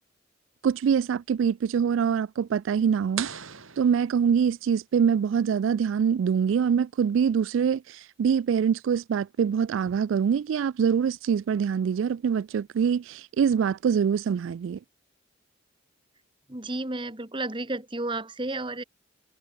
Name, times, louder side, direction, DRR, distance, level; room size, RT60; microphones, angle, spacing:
voice 1, 0.6-14.8, right 7 dB, 75° right, 0.3 m, -24 dB
sound 1, 3.2-4.8, right 8 dB, 90° right, 4.2 m, -38 dB
voice 2, 16.5-18.8, right 2 dB, 25° right, 1.5 m, -32 dB
head